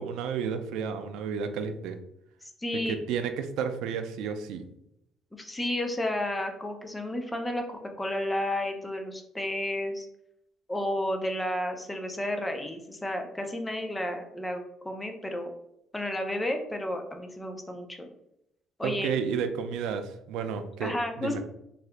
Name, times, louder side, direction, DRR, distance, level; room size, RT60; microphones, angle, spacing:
voice 1, 0.0-2.0 2.7-4.7 18.8-21.4, right 6 dB, 85° right, 8 dB, 0.3 m, -32 dB
voice 2, 2.6-3.0 5.3-10.1 10.7-15.5 15.9-18.1 18.8-19.1 20.8-21.4, left 1 dB, 10° left, 4 dB, 0.5 m, -32 dB
2.7 x 2.4 x 3.3 m, 0.79 s
cardioid pair, 125°, 0 cm